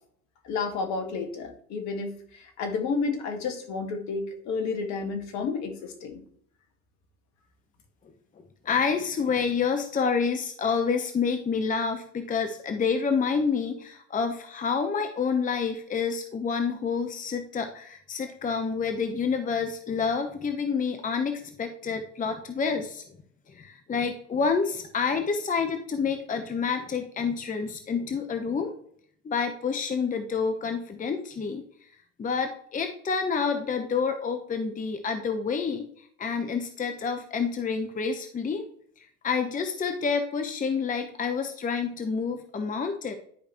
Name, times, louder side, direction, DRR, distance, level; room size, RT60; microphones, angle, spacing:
voice 1, 0.5-6.2, left 4 dB, 55° left, 5 dB, 1.8 m, -31 dB
voice 2, 8.6-23.0 23.5-28.7 29.2-31.6 32.2-38.6 39.0-43.2, left 5 dB, 25° left, 7 dB, 0.9 m, -28 dB
11.0 x 5.0 x 3.0 m, 0.62 s
hypercardioid pair, 75°, 34 cm